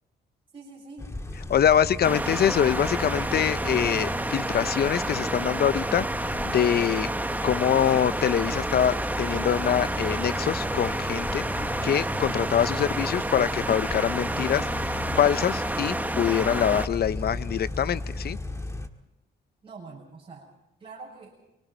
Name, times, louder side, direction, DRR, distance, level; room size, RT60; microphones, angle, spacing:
voice 1, 0.5-1.1 19.6-20.5 20.8-21.4, right 3 dB, 25° right, -4 dB, 7.7 m, -44 dB
sound 1, 1.0-18.9, left 2 dB, 15° left, 1.8 m, -35 dB
voice 2, 1.5-7.1 7.4-18.4, left 9 dB, 50° left, 15 dB, 0.8 m, -25 dB
sound 2, 2.0-16.9, right 1 dB, 10° right, 1.0 m, -30 dB
28.5 x 24.0 x 4.5 m, 0.91 s
cardioid pair, 90°, 20 cm